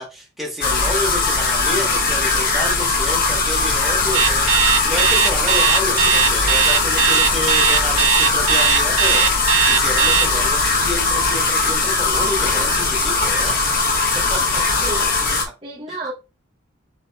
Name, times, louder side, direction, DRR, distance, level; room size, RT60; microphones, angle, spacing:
voice 1, 0.0-4.5 4.8-9.3 9.7-13.6 14.3-14.6, left 1 dB, ahead, 1.1 m, -29 dB
sound 1, 0.6-15.5, left 3 dB, 45° left, 0.8 m, -19 dB
Alarm, 4.1-10.3, right 7 dB, 85° right, 0.6 m, -17 dB
voice 2, 14.5-15.1 15.6-16.1, right 2 dB, 25° right, 0.7 m, -32 dB
4.2 x 4.1 x 2.2 m
head